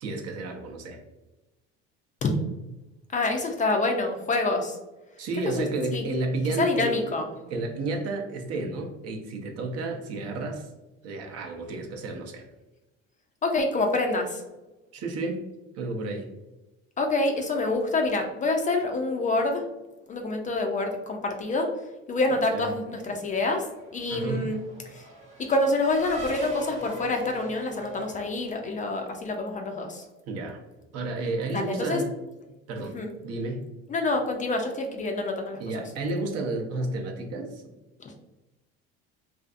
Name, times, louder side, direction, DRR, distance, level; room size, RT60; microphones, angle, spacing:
voice 1, 0.0-1.0 5.2-7.0 7.5-10.7 11.0-12.5 14.9-15.4 15.7-16.3 22.5-22.6 24.1-24.5 30.3-30.6 30.9-32.1 32.7-33.0 33.2-33.6 35.6-37.7, right 2 dB, 55° right, 3 dB, 0.6 m, -31 dB
voice 2, 3.1-4.8 5.5-5.7 5.9-6.0 6.6-7.3 13.4-14.4 17.0-19.7 20.1-21.8 22.1-25.1 25.4-30.1 31.5-32.0 32.9-33.1 33.9-35.8 38.0-38.1, left 2 dB, 25° left, 3 dB, 0.4 m, -27 dB
Race car auto racing / Accelerating revving vroom, 23.1-29.2, equal, 25° right, 0.8 m, -41 dB
2.5 x 2.4 x 2.4 m, 1.0 s
supercardioid pair, 110°, 30 cm